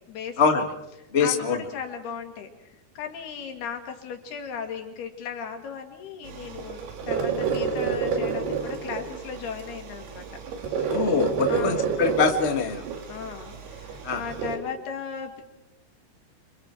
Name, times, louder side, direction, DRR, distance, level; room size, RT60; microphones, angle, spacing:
voice 1, 0.1-0.4 1.2-2.5 3.0-10.3 10.7-11.1 11.5-12.0 13.1-15.4, left 6 dB, 80° left, 5 dB, 4.3 m, -36 dB
voice 2, 1.1-1.6 10.9-12.8 14.0-14.2, left 5 dB, 60° left, 5 dB, 0.6 m, -23 dB
sound 1, 6.3-14.6, right 6 dB, 85° right, 4.2 m, -29 dB
27.0 x 26.5 x 4.6 m, 0.95 s
omnidirectional pair, 4.5 m